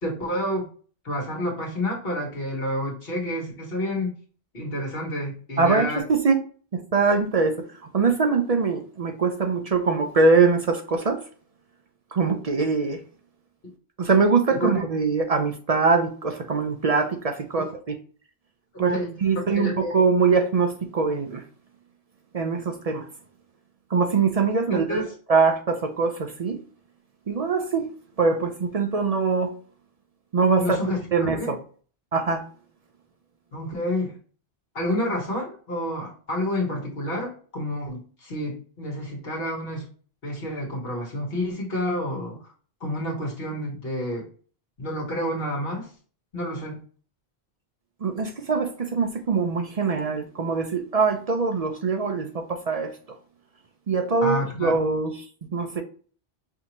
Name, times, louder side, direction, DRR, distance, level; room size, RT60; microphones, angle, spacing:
voice 1, 0.0-0.7 1.0-4.1 4.5-6.0 14.5-14.7 17.6-17.7 18.7-19.1 19.5-20.0 24.7-25.1 30.6-31.0 31.4-31.5 33.5-34.2 34.7-39.9 40.2-42.4 42.8-44.3 44.8-45.9 46.3-46.8 54.2-54.7, left 1 dB, 65° left, 1.5 m, -29 dB
voice 2, 5.6-6.4 6.7-7.6 7.9-11.2 12.1-13.0 14.0-17.8 18.8-21.4 22.3-23.1 23.9-25.0 25.3-26.6 27.3-27.9 28.2-29.5 30.3-31.6 32.1-32.5 48.0-52.9 53.9-55.1 55.5-55.8, right 4 dB, 45° right, 0.5 m, -23 dB
5.8 x 2.7 x 2.9 m
omnidirectional pair, 1.1 m